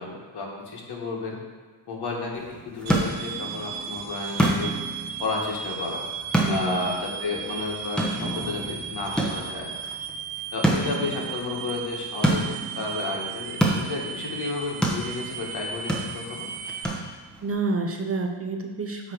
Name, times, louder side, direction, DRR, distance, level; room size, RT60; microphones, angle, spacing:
voice 1, 0.0-1.4 1.9-4.8 5.2-6.0 6.5-9.7 10.5-16.5, left 3 dB, 55° left, -2 dB, 2.0 m, -32 dB
sound 1, 2.3-17.5, right 1 dB, ahead, 1.1 m, -29 dB
sound 2, 2.9-16.9, right 7 dB, 85° right, 0.8 m, -36 dB
voice 2, 6.4-6.8 17.4-19.1, right 3 dB, 30° right, 3 dB, 0.6 m, -28 dB
8.7 x 3.2 x 6.5 m, 1.4 s
cardioid pair, 110°, 47 cm